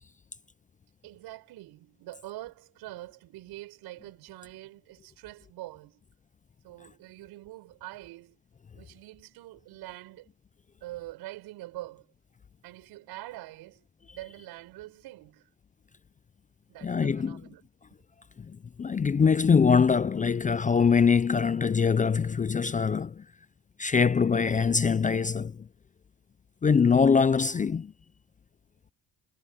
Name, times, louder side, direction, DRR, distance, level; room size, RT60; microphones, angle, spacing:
voice 1, 1.0-6.0 6.6-8.4 8.7-10.3 10.8-12.1 12.6-13.8 14.1-15.5 16.7-17.7, right 17 dB, 80° right, 6.5 m, -44 dB
voice 2, 16.8-17.4 18.8-23.2 23.8-25.5 26.6-27.9, left 6 dB, 20° left, 0.5 m, -23 dB
supercardioid pair, 85°, 38 cm